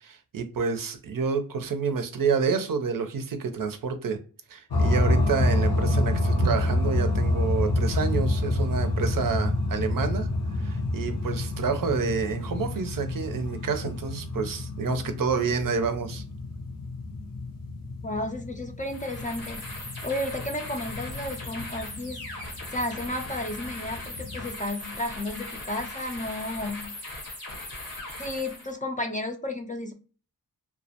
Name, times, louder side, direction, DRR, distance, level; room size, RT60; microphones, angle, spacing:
voice 1, 0.0-4.2 4.5-10.3 10.6-16.2, right 5 dB, 60° right, 0.5 m, -28 dB
sound 1, 4.7-24.5, left 2 dB, 60° left, 0.7 m, -28 dB
voice 2, 18.0-19.6 20.0-22.2 22.7-26.9 28.2-29.9, left 1 dB, 20° left, 0.4 m, -33 dB
sound 2, 18.8-28.7, left 2 dB, 85° left, 1.1 m, -39 dB
2.2 x 2.1 x 2.7 m
cardioid pair, 55°, 37 cm